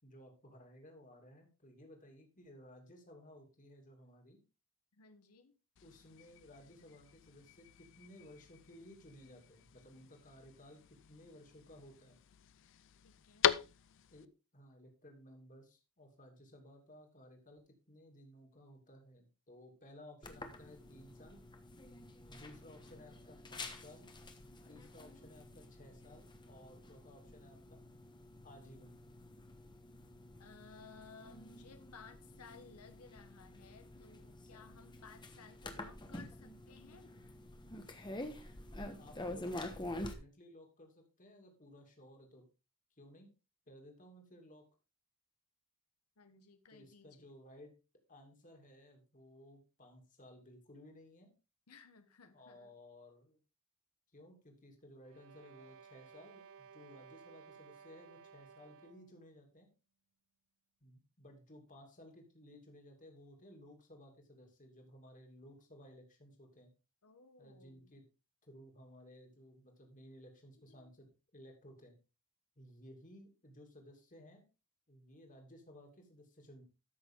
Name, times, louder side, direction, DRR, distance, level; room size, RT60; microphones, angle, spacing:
voice 1, 0.0-4.4 5.8-12.2 14.1-21.4 22.3-24.1 24.7-27.8 28.4-29.0 38.8-42.5 42.9-43.3 43.7-44.7 46.7-47.8 48.1-51.3 52.3-53.4 54.1-59.7 60.8-66.7 67.4-68.0 68.4-71.1 71.3-71.9 72.6-74.4 74.9-76.6, left 1 dB, 35° left, 3 dB, 2.6 m, -58 dB
voice 2, 4.9-5.6 13.0-13.5 30.4-37.3 46.2-47.3 51.7-52.7 67.0-67.9 70.7-70.9, left 4 dB, 85° left, 9 dB, 1.1 m, -58 dB
sound 1, 5.8-14.3, left 9 dB, 55° left, 0.5 m, -41 dB
sound 2, 20.2-40.1, left 1 dB, 20° left, 1.2 m, -48 dB
sound 3, 55.0-59.2, right 6 dB, 60° right, 0.6 m, -57 dB
13.5 x 6.3 x 3.7 m, 0.31 s
head